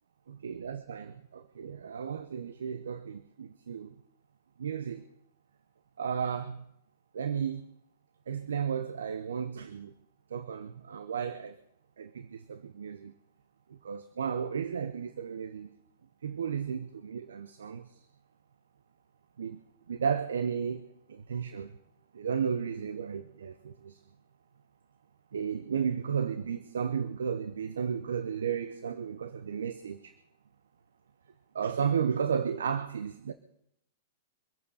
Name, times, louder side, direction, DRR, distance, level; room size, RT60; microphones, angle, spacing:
voice 1, 0.3-3.9 4.6-5.0 6.0-6.6 7.1-7.6 8.3-9.9 10.3-11.6 12.0-13.1 13.8-15.7 16.2-17.9 19.4-19.6 19.9-21.7 22.1-24.0 25.3-30.1 31.5-33.3, right 7 dB, 80° right, 0.9 m, -33 dB
24.0 x 8.6 x 5.8 m
hypercardioid pair, 115°, 0 cm